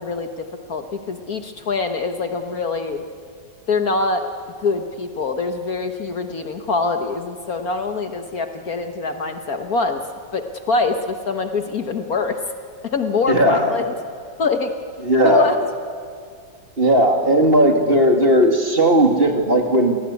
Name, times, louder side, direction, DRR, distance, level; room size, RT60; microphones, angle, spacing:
voice 1, 0.0-3.0 3.7-4.2 4.6-10.0 10.3-12.4 12.8-13.8 14.4-14.7 15.2-15.6, left 4 dB, 55° left, 6 dB, 1.5 m, -24 dB
voice 2, 13.3-13.8 15.0-15.5 16.8-20.0, right 1 dB, 30° right, 3 dB, 2.4 m, -16 dB
28.0 x 19.0 x 9.6 m, 2.1 s
omnidirectional pair, 2.1 m